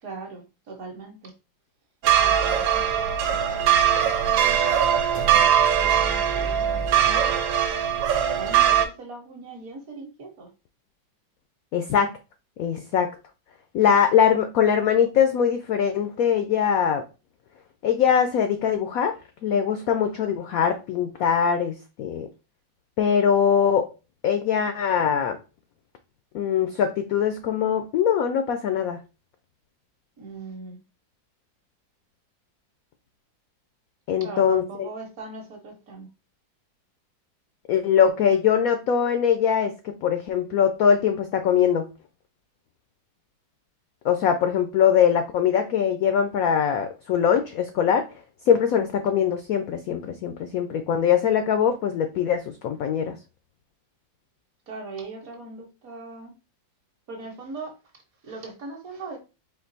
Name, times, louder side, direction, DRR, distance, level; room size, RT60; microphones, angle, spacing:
voice 1, 0.0-1.3 2.2-4.6 5.3-7.3 8.4-10.5 30.2-30.8 34.2-36.1 54.7-56.3 57.1-59.2, right 3 dB, 55° right, 2 dB, 1.3 m, -40 dB
sound 1, 2.0-8.9, right 9 dB, 85° right, 1.3 m, -21 dB
voice 2, 11.7-12.1 12.6-13.1 13.7-17.0 17.8-19.1 19.4-22.3 23.0-23.9 24.2-25.4 26.3-29.0 34.1-34.6 37.7-41.9 44.0-48.1 48.5-53.1, left 8 dB, 80° left, 7 dB, 0.8 m, -22 dB
4.4 x 2.5 x 3.9 m, 0.30 s
omnidirectional pair, 2.0 m